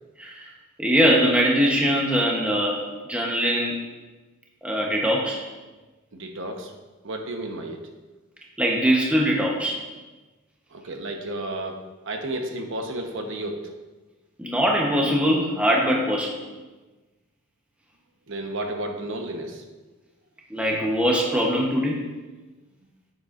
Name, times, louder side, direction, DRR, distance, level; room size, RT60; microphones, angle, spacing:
voice 1, 0.8-2.8 3.1-3.8 4.6-5.4 8.6-9.8 14.4-16.3 20.5-22.0, equal, 5° right, -2 dB, 0.9 m, -22 dB
voice 2, 6.1-6.7 7.0-7.8 10.7-13.7 18.3-19.6, right 1 dB, 60° right, 3 dB, 1.0 m, -32 dB
9.8 x 7.9 x 2.5 m, 1.2 s
head